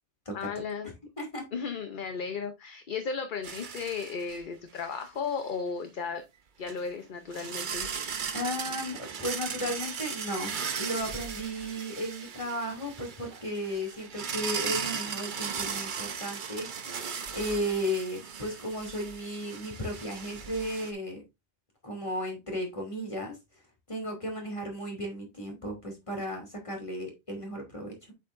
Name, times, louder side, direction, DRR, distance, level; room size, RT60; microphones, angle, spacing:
voice 1, 0.3-0.9 1.5-6.2 6.6-7.9, left 5 dB, 50° left, 7 dB, 0.9 m, -35 dB
sound 1, 3.4-4.4 4.8-4.9 6.7-6.8 7.3-20.9, right 6 dB, 50° right, 0.9 m, -37 dB
voice 2, 8.3-16.9 17.3-21.2 21.8-23.4 23.9-27.9, equal, 30° left, 1 dB, 2.7 m, -35 dB
8.2 x 6.7 x 2.6 m, 0.23 s
omnidirectional pair, 1.1 m